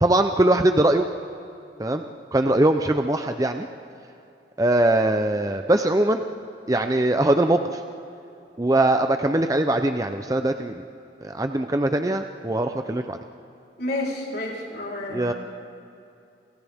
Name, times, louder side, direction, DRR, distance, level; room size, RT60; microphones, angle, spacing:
voice 1, 0.0-1.1 1.8-2.0 2.3-3.7 4.6-6.2 6.7-7.8 8.6-10.8 11.2-13.2 15.1-15.3, right 1 dB, 20° right, 6 dB, 0.6 m, -21 dB
voice 2, 13.8-15.3, left 1 dB, 55° left, -4 dB, 4.0 m, -30 dB
29.5 x 28.5 x 3.6 m, 2.6 s
head